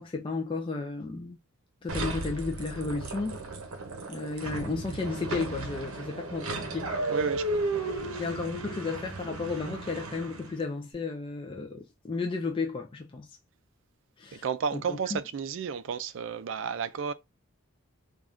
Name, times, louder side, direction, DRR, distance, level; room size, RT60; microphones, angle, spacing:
voice 1, 0.0-1.4 1.8-3.4 4.1-7.1 8.2-13.4 14.2-14.4 14.7-15.2, left 3 dB, 25° left, 0.3 m, -33 dB
sound 1, 1.9-10.6, right 2 dB, 80° right, 0.7 m, -34 dB
voice 2, 7.0-8.2 14.3-17.1, right 6 dB, 60° right, 0.3 m, -33 dB
3.4 x 2.3 x 2.4 m
head